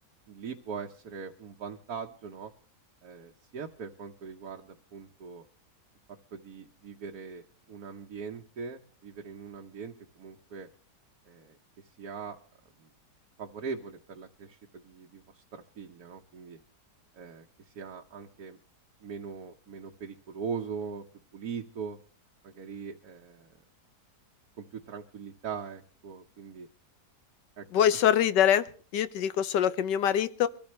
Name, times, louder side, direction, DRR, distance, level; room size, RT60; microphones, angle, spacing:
voice 1, 0.3-2.5 3.0-5.5 6.3-7.4 7.7-10.7 11.3-11.6 12.0-12.4 12.8-12.9 13.4-16.6 17.1-18.6 19.0-21.0 21.3-22.0 22.4-23.6 24.6-26.7 27.6-27.7 27.9-28.0, right 6 dB, 60° right, 2 dB, 1.4 m, -41 dB
voice 2, 27.7-28.6 28.9-30.5, left 10 dB, 80° left, 13 dB, 1.5 m, -24 dB
23.5 x 14.0 x 3.2 m, 0.39 s
omnidirectional pair, 1.9 m